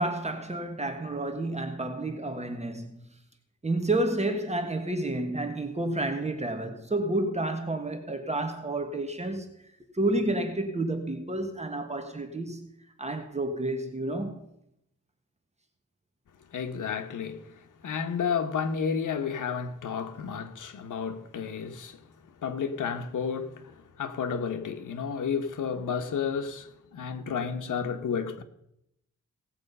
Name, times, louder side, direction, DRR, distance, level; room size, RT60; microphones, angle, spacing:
voice 1, 0.0-3.0 3.6-9.5 9.9-12.7 13.0-14.5, right 2 dB, 20° right, 1.5 m, -30 dB
voice 2, 16.5-22.0 22.4-28.4, left 6 dB, 85° left, 1.2 m, -32 dB
17.5 x 7.7 x 5.5 m
wide cardioid pair, 100°, 30 cm